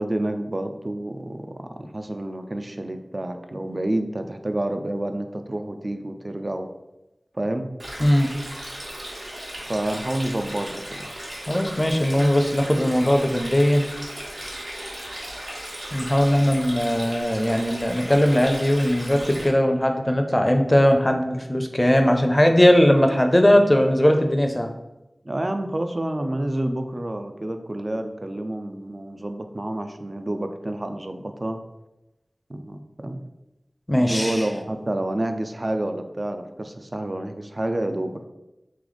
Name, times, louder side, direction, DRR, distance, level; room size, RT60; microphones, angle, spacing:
voice 1, 0.0-6.7 7.3-7.7 9.7-11.1 25.2-31.6 32.5-33.2 34.0-38.3, right 1 dB, 40° right, 7 dB, 0.4 m, -29 dB
Stream, 7.8-19.5, equal, 75° right, 1.4 m, -36 dB
voice 2, 11.5-13.8 15.9-24.7 33.9-34.5, equal, 20° left, 4 dB, 0.5 m, -19 dB
3.5 x 3.2 x 3.9 m, 0.96 s
wide cardioid pair, 60°, 0 cm